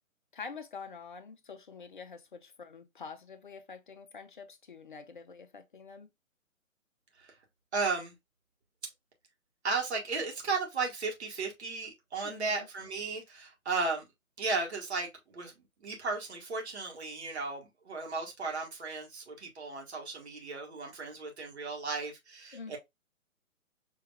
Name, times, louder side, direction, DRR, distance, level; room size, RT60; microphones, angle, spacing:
voice 1, 0.3-6.1 12.2-12.7 22.5-22.8, left 5 dB, 35° left, 0.5 m, -46 dB
voice 2, 7.7-8.1 9.6-14.0 14.4-15.5 15.8-22.8, right 4 dB, 50° right, 1.5 m, -35 dB
5.6 x 2.9 x 2.2 m
figure-of-eight pair, 135°, 42 cm